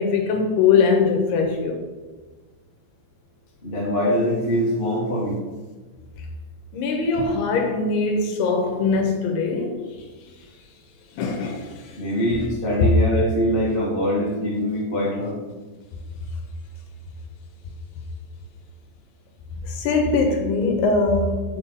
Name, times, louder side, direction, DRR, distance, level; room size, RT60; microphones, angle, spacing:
voice 1, 0.0-1.8 6.7-9.8 11.1-12.0 19.6-21.6, left 4 dB, 75° left, 2.8 m, -21 dB
voice 2, 3.6-5.4 12.0-15.4, equal, 50° left, 0.6 m, -23 dB
7.5 x 4.8 x 6.8 m
omnidirectional pair, 5.1 m